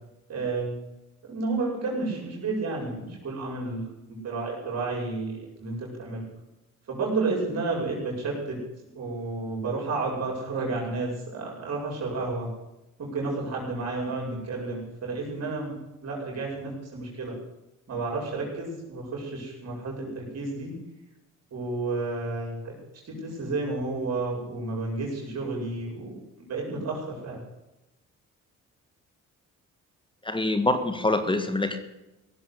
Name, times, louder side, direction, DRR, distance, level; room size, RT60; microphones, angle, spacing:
voice 1, 0.3-0.8 1.2-6.2 6.9-8.6 8.9-12.5 13.0-15.8 16.0-17.3 17.9-20.8 21.5-22.7 23.0-27.4, right 3 dB, 55° right, -2 dB, 5.8 m, -31 dB
voice 2, 30.2-31.8, left 2 dB, 15° left, 9 dB, 1.7 m, -25 dB
17.0 x 7.6 x 8.2 m, 0.96 s
cardioid pair, 90°, 30 cm